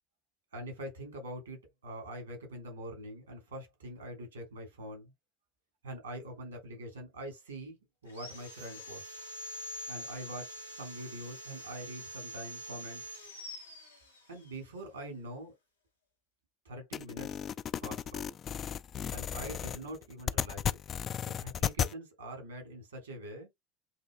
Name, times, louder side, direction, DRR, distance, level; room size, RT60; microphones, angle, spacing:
voice 1, 0.5-5.1 5.8-7.8 8.0-9.1 9.9-13.1 14.3-15.5 16.6-17.4 17.8-18.3 19.1-20.8 21.4-23.5, right 1 dB, 80° right, 2.9 m, -44 dB
Sawing, 8.1-14.5, equal, 90° left, 1.2 m, -45 dB
sound 1, 16.9-21.9, left 9 dB, 40° left, 0.3 m, -34 dB
8.0 x 3.0 x 2.2 m
figure-of-eight pair, 65°, 0 cm